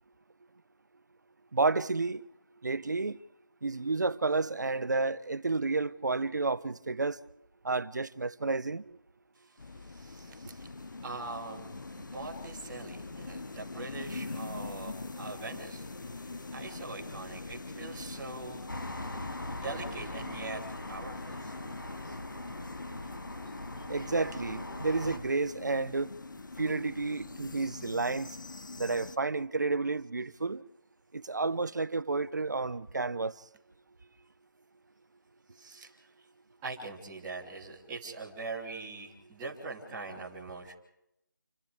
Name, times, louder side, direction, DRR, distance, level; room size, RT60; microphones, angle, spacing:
voice 1, 1.5-2.2 2.6-3.2 3.6-7.2 7.6-8.8 23.9-26.1 26.6-28.4 28.8-30.6 31.1-33.3, right 3 dB, 60° right, 1.2 m, -31 dB
sound 1, 9.6-29.2, left 3 dB, 70° left, 0.9 m, -43 dB
voice 2, 9.7-10.7 11.0-19.2 19.5-21.5 22.0-22.2 23.8-23.9 35.5-36.1 36.6-40.7, right 3 dB, 10° right, 3.2 m, -43 dB
sound 2, 18.7-25.2, left 1 dB, 90° left, 5.8 m, -42 dB
30.0 x 25.5 x 3.5 m
figure-of-eight pair, 175°, 11 cm